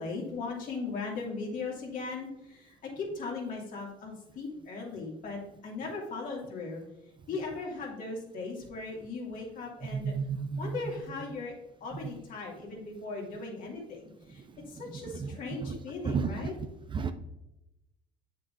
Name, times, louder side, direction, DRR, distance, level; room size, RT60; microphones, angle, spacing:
voice 1, 0.0-6.8 7.3-10.1 10.6-11.5 11.8-14.0 14.3-14.4 14.7-16.5, left 3 dB, 60° left, -1 dB, 2.6 m, -38 dB
voice 2, 9.9-10.8 14.6-15.8 16.0-16.4 16.9-17.1, right 5 dB, 30° right, 9 dB, 0.5 m, -33 dB
8.0 x 6.4 x 2.7 m, 0.90 s
supercardioid pair, 80°, 16 cm